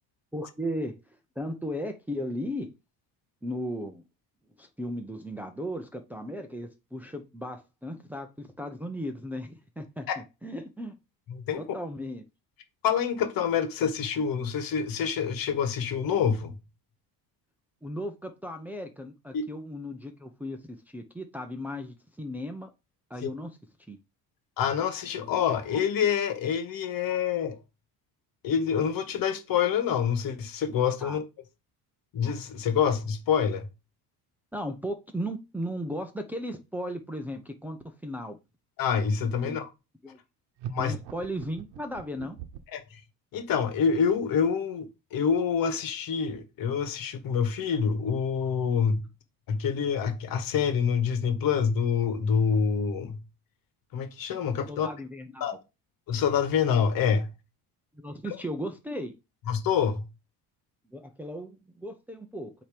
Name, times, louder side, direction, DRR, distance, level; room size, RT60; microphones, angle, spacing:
voice 1, 0.3-2.7 3.4-4.0 4.6-10.1 10.4-10.9 11.6-12.3 17.8-20.6 20.9-22.7 23.1-23.6 23.9-24.0 31.0-31.2 34.5-38.4 39.4-39.6 40.0-40.2 40.8-42.4 54.7-55.4 57.9-59.2 60.9-62.5, equal, 5° right, 0.7 m, -36 dB
voice 2, 12.8-16.5 19.3-19.5 23.2-23.3 24.6-27.6 28.4-31.3 32.1-33.7 38.8-39.7 40.7-41.0 42.7-43.0 43.3-49.0 49.5-53.2 53.9-54.9 55.4-55.6 56.1-57.3 59.5-60.1, left 7 dB, 60° left, 1.4 m, -26 dB
sound 1, 40.6-42.8, right 9 dB, 75° right, 1.0 m, -41 dB
8.6 x 3.0 x 5.0 m
cardioid pair, 145°, 39 cm